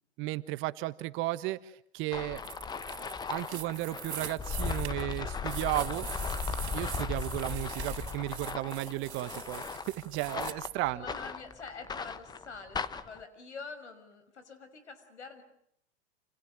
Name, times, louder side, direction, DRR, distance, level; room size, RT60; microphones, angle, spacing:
voice 1, 0.2-2.4 3.3-6.1 6.7-9.6 10.0-11.0, right 17 dB, 35° right, 14 dB, 1.4 m, -34 dB
sound 1, 2.1-13.2, left 5 dB, 10° left, 1.1 m, -37 dB
sound 2, 2.4-10.5, right 10 dB, 75° right, 2.9 m, -44 dB
voice 2, 10.9-15.4, left 4 dB, 90° left, 9 dB, 5.9 m, -46 dB
29.0 x 28.0 x 6.4 m, 0.70 s
hypercardioid pair, 120°, 33 cm